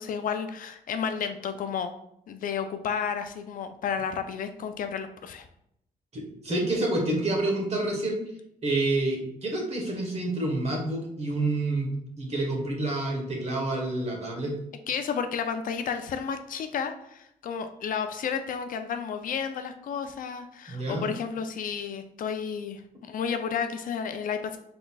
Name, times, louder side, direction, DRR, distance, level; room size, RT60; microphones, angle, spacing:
voice 1, 0.0-1.9 2.3-5.5 14.9-24.6, left 7 dB, 60° left, 8 dB, 0.4 m, -32 dB
voice 2, 6.1-8.2 8.6-11.9 12.2-14.5 20.7-21.1, right 2 dB, 45° right, 0 dB, 1.3 m, -28 dB
3.8 x 3.8 x 2.3 m, 0.74 s
cardioid pair, 95°, 16 cm